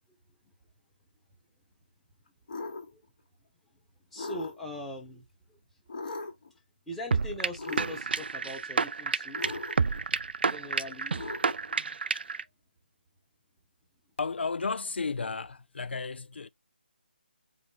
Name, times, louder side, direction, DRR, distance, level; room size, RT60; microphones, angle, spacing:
sound 1, 2.5-2.9 4.2-4.8 5.9-6.5 7.6-8.2 9.3-10.0 11.1-11.8, left 3 dB, 45° left, 1.5 m, -39 dB
voice 1, 4.1-5.6 6.9-9.4 10.5-11.3, left 1 dB, 5° left, 1.1 m, -41 dB
sound 2, 7.1-12.4, right 5 dB, 65° right, 0.4 m, -30 dB
voice 2, 14.2-16.5, left 4 dB, 80° left, 0.4 m, -33 dB
5.2 x 2.1 x 4.8 m
figure-of-eight pair, 165°, 6 cm